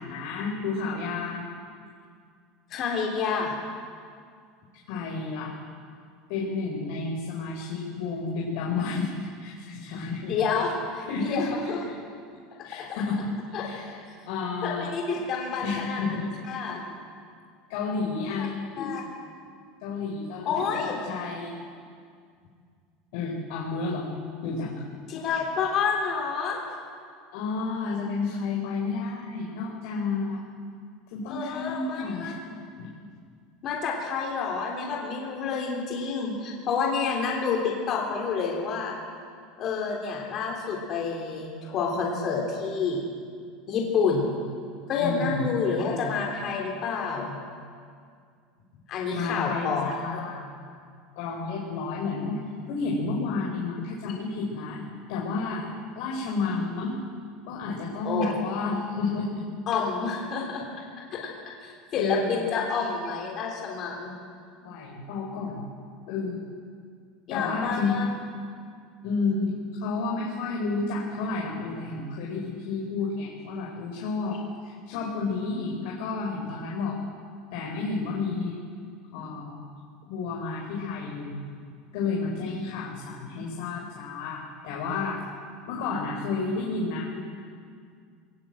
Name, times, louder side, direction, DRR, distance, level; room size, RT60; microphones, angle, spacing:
voice 1, 0.0-1.5 4.9-5.6 6.3-9.1 9.4-10.4 11.1-11.8 12.6-13.3 13.6-14.0 14.2-14.9 15.6-16.3 17.7-18.5 19.8-21.5 23.1-24.1 24.4-24.7 27.3-30.4 31.1-32.3 32.8-32.9 45.0-45.4 49.1-50.6 51.1-52.4 52.7-55.7 55.9-56.9 57.5-59.5 61.9-62.5 64.6-65.6 66.1-66.4 67.3-68.0 69.0-77.0 77.5-78.6 79.1-79.7 80.1-81.4 81.9-85.2 85.7-87.2, left 4 dB, 70° left, -2 dB, 4.6 m, -31 dB
voice 2, 2.7-3.5 10.3-11.8 13.5-13.7 14.6-16.0 16.5-16.8 18.4-18.5 18.8-19.0 20.5-21.0 25.1-26.6 31.3-32.3 33.6-39.0 39.6-43.1 43.7-44.4 44.9-47.4 48.9-50.2 58.0-58.3 59.7-60.6 61.1-61.2 61.6-64.1 67.3-68.0, left 5 dB, 40° left, -1 dB, 3.5 m, -29 dB
23.0 x 18.5 x 7.9 m, 2.2 s
supercardioid pair, 145°, 0 cm